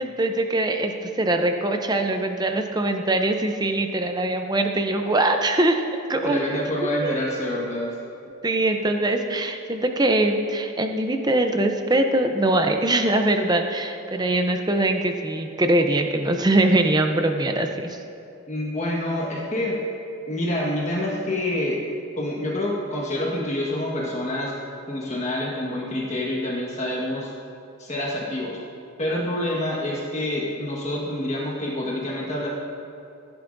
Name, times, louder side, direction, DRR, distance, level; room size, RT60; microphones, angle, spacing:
voice 1, 0.0-5.8 6.1-6.6 7.0-7.2 8.4-18.0, right 2 dB, 20° right, 5 dB, 0.6 m, -22 dB
voice 2, 6.2-8.0 18.5-19.7 20.3-21.8 22.1-24.5 24.9-27.3 27.8-28.6 29.0-32.5, left 1 dB, 30° left, -4 dB, 1.5 m, -27 dB
15.5 x 10.5 x 2.6 m, 2.7 s
head